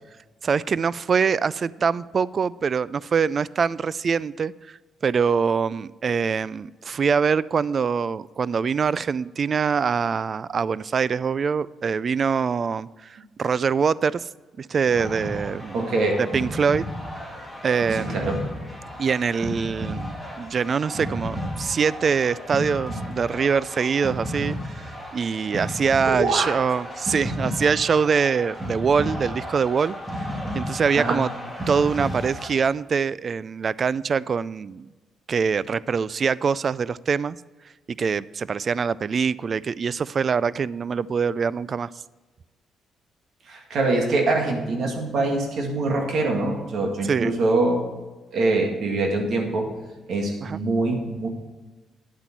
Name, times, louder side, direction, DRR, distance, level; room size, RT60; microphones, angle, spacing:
voice 1, 0.4-4.8 5.0-14.3 14.6-15.8 16.2-16.9 17.6-18.2 19.0-30.0 30.5-31.3 31.7-34.9 35.3-37.4 37.9-41.9 47.1-47.3 50.4-50.6, right 6 dB, 45° right, 20 dB, 0.3 m, -24 dB
sound 1, 14.9-32.5, equal, 20° right, 2.7 m, -33 dB
voice 2, 15.7-16.2 18.0-18.4 26.1-26.5 31.0-31.3 43.5-47.8 48.3-49.7 50.1-51.3, right 2 dB, 65° right, 2 dB, 2.1 m, -24 dB
10.5 x 8.2 x 4.6 m, 1.3 s
cardioid pair, 90°, 0 cm